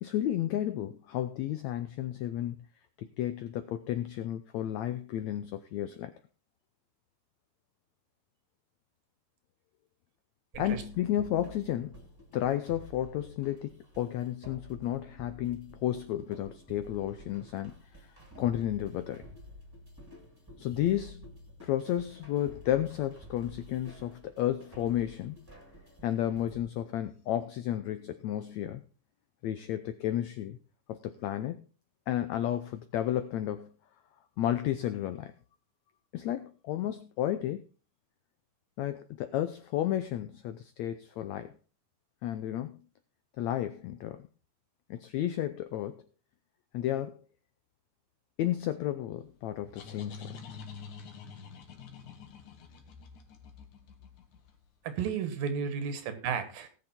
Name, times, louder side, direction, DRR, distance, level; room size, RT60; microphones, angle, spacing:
voice 1, 0.0-2.6 3.0-6.1 10.6-11.9 12.3-17.7 18.4-19.2 20.6-21.3 21.6-25.4 26.0-28.8 29.4-30.6 30.9-31.6 32.1-33.7 34.4-35.3 36.1-37.6 38.8-41.5 42.2-42.8 43.4-44.2 44.9-46.0 46.7-47.2 48.4-50.4, left 12 dB, 85° left, 11 dB, 1.6 m, -32 dB
sound 1, 10.5-26.6, left 1 dB, 5° right, 2.3 m, -51 dB
sound 2, 49.3-54.8, left 5 dB, 65° left, 2.8 m, -47 dB
voice 2, 54.8-56.7, right 6 dB, 90° right, 10 dB, 3.4 m, -33 dB
18.0 x 6.8 x 4.4 m, 0.35 s
omnidirectional pair, 4.0 m